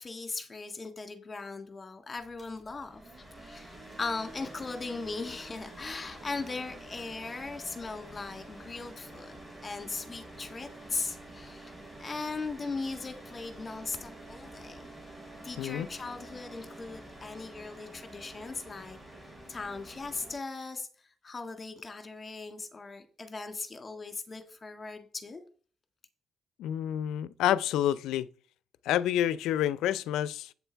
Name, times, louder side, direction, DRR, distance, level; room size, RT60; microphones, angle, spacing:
voice 1, 0.0-3.0 3.4-11.7 12.0-14.9 15.4-19.0 19.5-25.4, left 3 dB, 30° left, 1.7 m, -39 dB
sound 1, 2.2-20.3, right 1 dB, ahead, 5.5 m, -48 dB
voice 2, 26.6-28.3 28.8-30.5, left 11 dB, 90° left, 0.4 m, -28 dB
8.3 x 6.9 x 4.5 m
cardioid pair, 90°, 0 cm